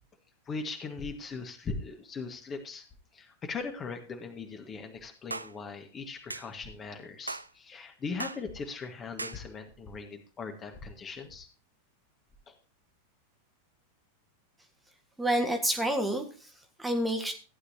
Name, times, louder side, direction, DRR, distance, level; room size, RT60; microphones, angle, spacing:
voice 1, 0.5-2.8 3.1-11.5 12.5-12.6, left 4 dB, 25° left, 4 dB, 1.7 m, -39 dB
sound 1, 5.3-5.5 6.3-6.5 7.3-7.5 8.2-8.4 9.2-9.4, right 2 dB, 80° right, 0.4 m, -37 dB
voice 2, 15.2-17.3, right 1 dB, 5° right, 5 dB, 1.7 m, -29 dB
15.5 x 9.9 x 2.9 m, 0.35 s
figure-of-eight pair, 90°, 0 cm